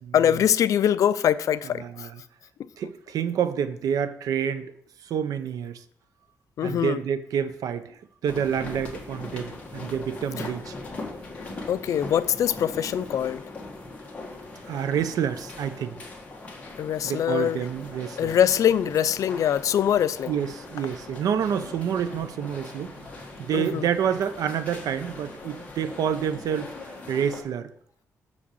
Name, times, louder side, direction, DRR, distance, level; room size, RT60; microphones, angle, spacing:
voice 1, 0.1-2.1 2.6-2.7 6.6-7.0 11.7-13.4 16.8-17.7 18.2-20.4 23.5-23.9, left 9 dB, 65° left, 0.4 m, -23 dB
voice 2, 1.8-2.2 2.8-4.7 5.0-5.8 6.6-10.8 14.7-16.0 17.0-18.4 20.3-22.9 23.4-26.7 27.1-27.7, right 8 dB, 85° right, 0.6 m, -28 dB
sound 1, 8.3-27.4, left 2 dB, 25° left, 1.7 m, -40 dB
6.5 x 5.0 x 6.9 m
wide cardioid pair, 160°, 6 cm